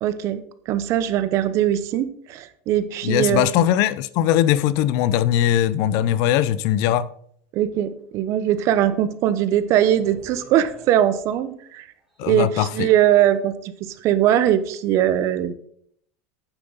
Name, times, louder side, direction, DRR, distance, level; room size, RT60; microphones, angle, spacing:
voice 1, 0.0-3.5 7.5-11.9 12.3-15.5, right 11 dB, 45° right, 0.9 m, -21 dB
voice 2, 3.0-7.1 12.2-12.9, left 11 dB, 60° left, 0.5 m, -20 dB
sound 1, 9.3-9.4 9.8-11.5 12.0-12.5, right 1 dB, 5° right, 2.4 m, -48 dB
9.0 x 7.8 x 4.0 m
supercardioid pair, 140°, 7 cm